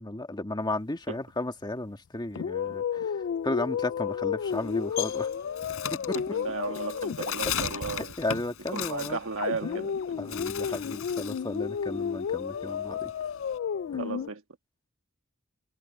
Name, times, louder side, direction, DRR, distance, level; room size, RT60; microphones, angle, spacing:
voice 1, 0.0-3.0 3.4-5.3 6.1-6.2 8.2-9.2 9.6-9.9 10.2-13.1 13.9-14.0, left 2 dB, 20° left, 1.6 m, -34 dB
sound 1, 2.4-7.9 9.4-14.3, left 7 dB, 55° left, 0.3 m, -32 dB
Bird, 4.4-9.9 10.2-11.5 11.8-13.6, left 8 dB, 70° left, 4.7 m, -36 dB
voice 2, 6.1-8.1 8.7-9.9 10.3-10.4 10.7-10.9 14.0-14.4, right 4 dB, 65° right, 1.5 m, -35 dB
head